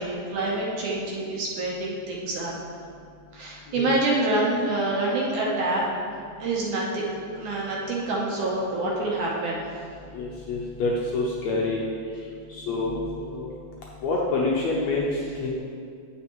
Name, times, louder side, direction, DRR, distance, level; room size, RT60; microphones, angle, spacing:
voice 1, 0.0-2.5 3.3-5.8 6.4-7.0 7.4-9.6, right 2 dB, 70° right, -4 dB, 2.2 m, -26 dB
voice 2, 10.1-11.8 12.5-13.5 14.0-15.0 15.4-15.6, left 3 dB, 80° left, -3 dB, 1.5 m, -27 dB
9.6 x 7.7 x 3.1 m, 2.3 s
omnidirectional pair, 4.1 m